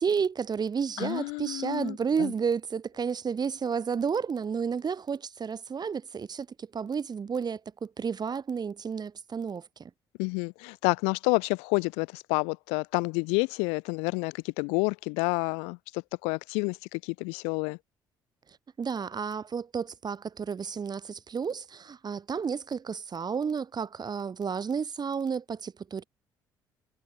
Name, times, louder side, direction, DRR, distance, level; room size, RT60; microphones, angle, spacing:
voice 1, 0.0-9.9 18.8-26.0, right 6 dB, 40° right, 5.4 m, -31 dB
voice 2, 1.0-2.3 10.2-17.8, left 34 dB, 70° left, 0.9 m, -29 dB
figure-of-eight pair, 50°, 11 cm